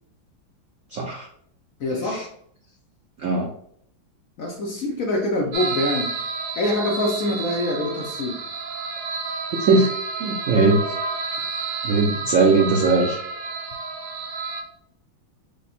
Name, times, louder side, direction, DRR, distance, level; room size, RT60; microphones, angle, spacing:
voice 1, 0.9-1.3 1.9-2.2 3.2-3.5 9.6-9.9 10.2-10.9 11.8-13.2, right 3 dB, 85° right, 0 dB, 0.6 m, -20 dB
voice 2, 1.8-2.3 4.4-6.2 6.6-8.4, left 1 dB, 70° left, 0 dB, 0.8 m, -25 dB
sound 1, 5.5-14.6, right 4 dB, 60° right, 0.9 m, -30 dB
5.1 x 2.2 x 4.2 m, 0.66 s
omnidirectional pair, 2.2 m